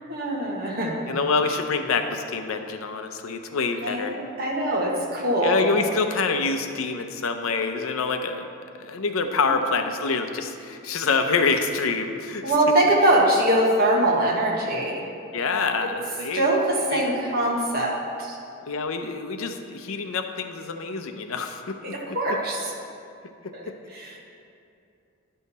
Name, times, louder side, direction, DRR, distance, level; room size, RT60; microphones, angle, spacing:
voice 1, 0.1-1.1 3.8-5.6 9.4-9.6 12.4-15.1 16.3-18.4 21.8-22.7 23.5-23.6 23.9-24.2, right 1 dB, 45° right, -3 dB, 1.4 m, -23 dB
voice 2, 1.1-4.2 5.4-8.5 8.8-12.4 15.3-16.5 16.9-17.1 18.7-21.8, left 4 dB, 75° left, 6 dB, 0.6 m, -26 dB
10.5 x 5.6 x 4.1 m, 2.5 s
head